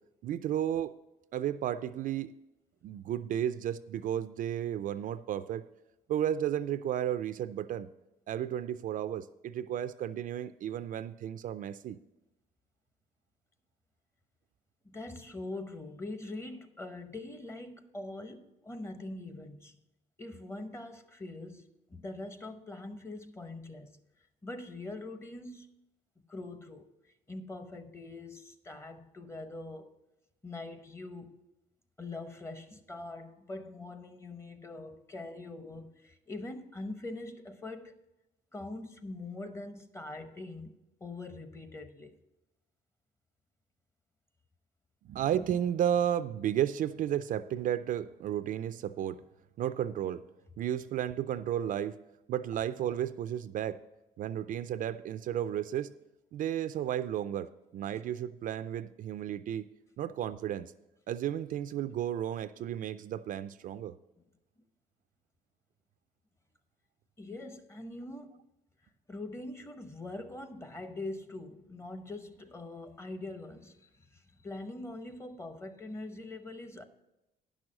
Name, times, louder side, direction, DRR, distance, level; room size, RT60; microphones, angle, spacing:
voice 1, 0.2-0.9 1.3-2.3 2.8-5.7 6.1-7.9 8.3-12.0 45.0-49.2 49.6-50.2 50.6-52.0 52.3-53.8 54.2-55.9 56.3-59.7 60.0-60.7 61.1-63.9, right 10 dB, 55° right, 0.4 m, -33 dB
voice 2, 14.8-19.7 20.2-24.0 24.4-25.7 26.2-26.9 27.3-29.9 30.4-31.4 32.0-37.9 38.5-42.2 67.2-68.4 69.1-76.8, left 2 dB, 15° left, 0.8 m, -43 dB
10.5 x 6.2 x 6.3 m
cardioid pair, 110°, 17 cm